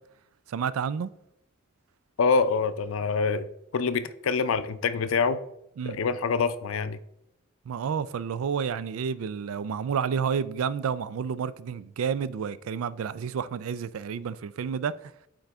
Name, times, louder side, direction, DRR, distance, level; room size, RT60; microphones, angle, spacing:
voice 1, 0.5-1.1 5.8-6.0 7.7-15.1, right 7 dB, 90° right, 0.4 m, -30 dB
voice 2, 2.2-3.5 3.7-5.4 5.8-7.0, left 5 dB, 80° left, 0.5 m, -25 dB
8.9 x 3.9 x 3.4 m
head